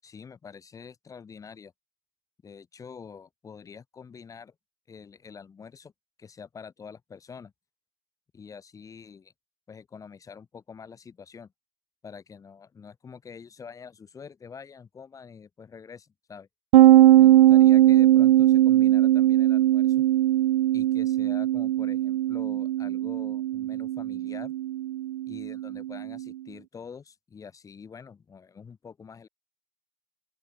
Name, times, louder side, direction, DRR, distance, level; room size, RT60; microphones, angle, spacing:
voice 1, 0.0-1.7 2.4-4.5 4.9-5.9 6.2-7.5 8.3-9.3 9.7-11.5 12.0-16.5 17.2-20.0 20.7-24.5 25.3-29.3, left 6 dB, 10° left, 5.8 m, -46 dB
sound 1, 16.7-26.2, right 14 dB, 50° right, 0.9 m, -20 dB
open air
hypercardioid pair, 165°, 32 cm